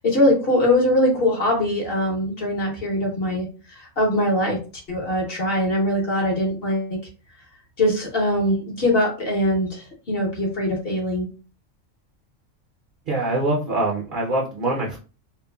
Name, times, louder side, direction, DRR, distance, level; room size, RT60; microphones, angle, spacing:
voice 1, 0.0-3.5 3.7-4.6 4.9-7.0 7.8-11.3, left 1 dB, 50° left, -1 dB, 0.9 m, -22 dB
voice 2, 13.1-15.0, right 2 dB, 55° right, -3 dB, 0.6 m, -24 dB
3.0 x 2.2 x 2.2 m, 0.35 s
omnidirectional pair, 1.4 m